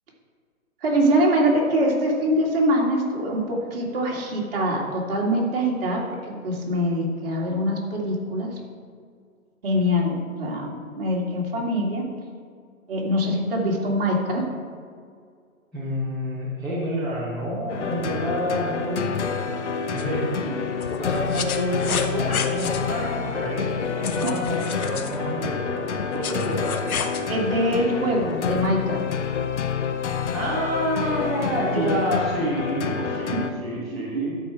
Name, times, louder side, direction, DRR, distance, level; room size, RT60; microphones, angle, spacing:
voice 1, 0.8-6.2 6.4-8.5 9.6-12.0 12.9-14.4 24.2-24.3 27.3-29.0 31.7-32.0 34.1-34.2, equal, 40° right, -2 dB, 2.2 m, -23 dB
voice 2, 15.7-19.6 19.9-20.4 21.0-26.9 30.3-34.4, equal, ahead, -15 dB, 0.7 m, -28 dB
sound 1, 17.7-33.5, left 6 dB, 55° left, 0.8 m, -28 dB
sound 2, 20.0-20.1 20.8-22.8 24.0-25.2 26.0-27.2, left 7 dB, 80° left, 0.9 m, -31 dB
11.5 x 4.9 x 5.9 m, 2.1 s
hypercardioid pair, 160°, 42 cm